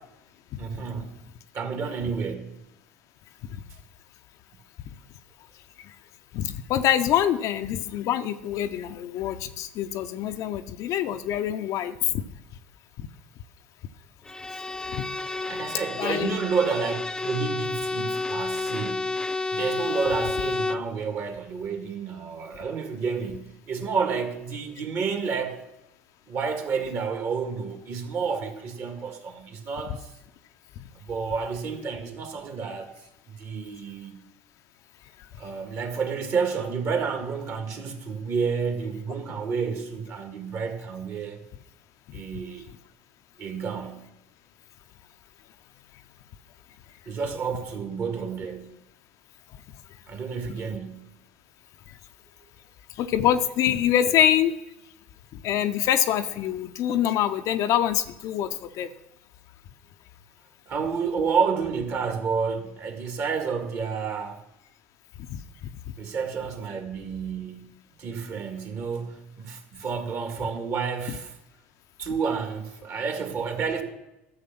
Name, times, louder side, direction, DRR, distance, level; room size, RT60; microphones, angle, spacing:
voice 1, 0.6-1.2 1.5-2.6 15.5-19.2 19.5-25.7 26.3-30.0 31.1-32.9 33.3-34.2 35.4-41.4 42.1-42.7 43.4-44.1 47.1-48.7 50.1-51.1 60.7-64.4 66.0-67.7 68.0-71.3 72.0-73.8, right 5 dB, 45° right, 2.0 m, -30 dB
voice 2, 6.3-12.2 14.9-15.1 16.0-16.4 53.0-54.5 55.4-58.5 58.8-58.9 65.3-65.4, left 11 dB, 55° left, 0.7 m, -25 dB
Bowed string instrument, 14.3-20.9, left 3 dB, 10° left, 0.3 m, -30 dB
13.0 x 6.7 x 5.9 m
figure-of-eight pair, 65°, 7 cm